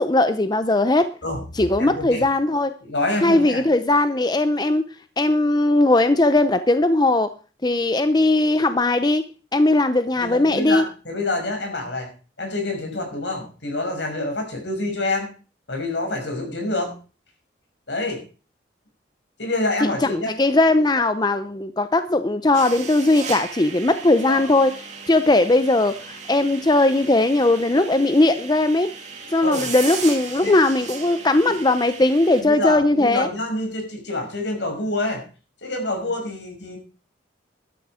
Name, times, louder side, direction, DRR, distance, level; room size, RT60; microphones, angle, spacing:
voice 1, 0.0-1.1 1.5-2.7 3.2-4.8 5.2-7.3 7.6-9.2 9.5-10.8 19.8-24.7 25.1-28.9 29.3-33.3, left 2 dB, 20° left, 10 dB, 0.6 m, -19 dB
voice 2, 1.8-2.2 2.8-3.6 10.2-12.1 12.4-15.3 15.7-16.9 17.9-18.2 19.4-20.4 24.3-24.4 29.4-29.7 30.4-30.5 32.4-35.2 35.6-36.8, left 2 dB, 80° left, 3 dB, 5.9 m, -27 dB
sound 1, 22.5-32.4, right 5 dB, 40° right, 2.5 m, -36 dB
12.5 x 9.9 x 4.9 m, 0.36 s
head